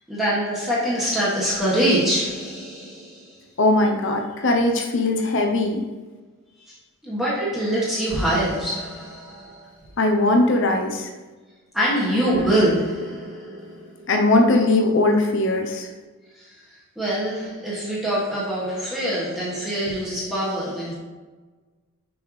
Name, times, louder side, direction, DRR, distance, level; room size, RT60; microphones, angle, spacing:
voice 1, 0.1-3.4 7.0-9.7 11.7-14.1 16.4-16.6 16.9-20.9, right 1 dB, ahead, -9 dB, 1.4 m, -24 dB
voice 2, 3.6-5.8 10.0-11.1 14.1-15.9, left 2 dB, 55° left, 3 dB, 0.7 m, -20 dB
6.0 x 5.5 x 3.2 m, 1.3 s
head